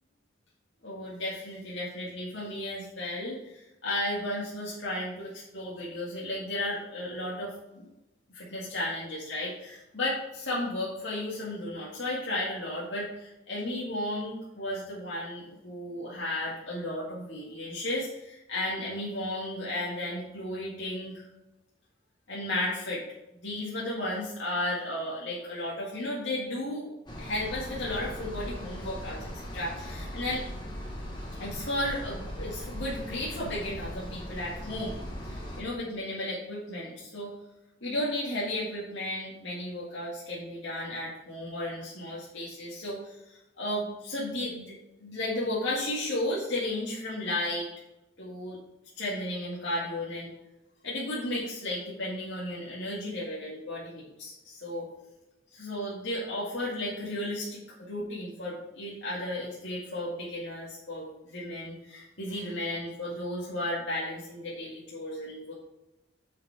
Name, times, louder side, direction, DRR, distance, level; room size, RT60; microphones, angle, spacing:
voice 1, 0.8-7.9 8.3-21.2 22.3-23.0 23.4-26.9 27.2-30.4 31.4-35.0 35.2-37.3 37.8-47.7 48.2-48.6 49.0-50.3 50.8-54.9 55.5-57.6 57.9-65.5, left 1 dB, 75° left, -6 dB, 2.0 m, -34 dB
sound 1, 27.1-35.6, equal, 20° left, 1.4 m, -39 dB
9.3 x 5.1 x 4.8 m, 0.96 s
head